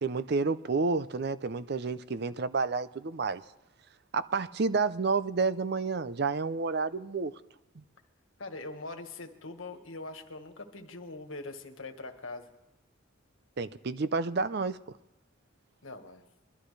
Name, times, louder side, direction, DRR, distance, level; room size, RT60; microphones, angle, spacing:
voice 1, 0.0-3.4 4.1-7.4 13.6-14.8, right 4 dB, 55° right, 15 dB, 0.5 m, -30 dB
voice 2, 8.4-12.5 15.8-16.2, left 2 dB, 85° left, 5 dB, 1.5 m, -42 dB
22.0 x 13.0 x 3.3 m, 0.94 s
head